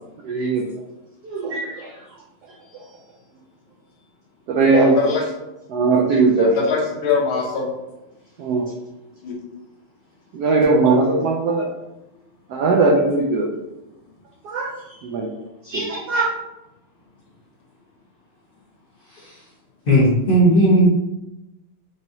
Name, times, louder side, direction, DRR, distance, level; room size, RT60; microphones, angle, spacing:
voice 1, 0.2-0.6 1.2-1.9 4.5-5.1 5.7-6.5 8.4-8.7 10.3-11.7 12.5-13.5 14.4-14.7 15.0-15.3 15.6-16.3, right 3 dB, 90° right, -1 dB, 0.8 m, -19 dB
voice 2, 4.5-5.3 6.3-7.7 9.2-9.3, left 5 dB, 75° left, -1 dB, 1.6 m, -23 dB
voice 3, 19.9-20.9, right 1 dB, 45° left, -7 dB, 0.7 m, -14 dB
4.7 x 2.9 x 2.6 m, 0.94 s
omnidirectional pair, 2.3 m